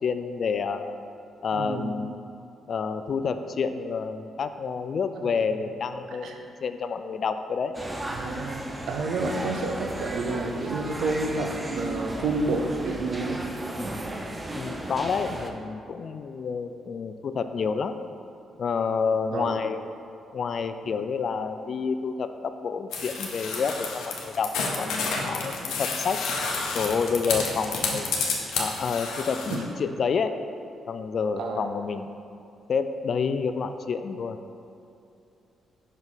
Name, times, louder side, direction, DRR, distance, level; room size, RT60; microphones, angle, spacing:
voice 1, 0.0-1.0 1.4-2.2 2.7-7.8 9.3-9.4 14.5-18.0 18.6-19.9 20.3-26.2 26.7-28.1 28.6-30.4 30.9-32.1 32.7-34.4, left 5 dB, 60° left, 9 dB, 0.3 m, -29 dB
voice 2, 1.5-1.9 5.3-5.4 6.2-6.4 8.1-13.4 19.3-19.6 29.5-29.6 31.4-31.7, right 3 dB, 80° right, 3 dB, 0.6 m, -29 dB
sound 1, 7.7-15.5, right 1 dB, 20° right, 0.6 m, -35 dB
sound 2, 22.9-29.6, left 4 dB, 80° left, 0.8 m, -30 dB
5.5 x 4.9 x 4.0 m, 2.6 s
supercardioid pair, 65°, 0 cm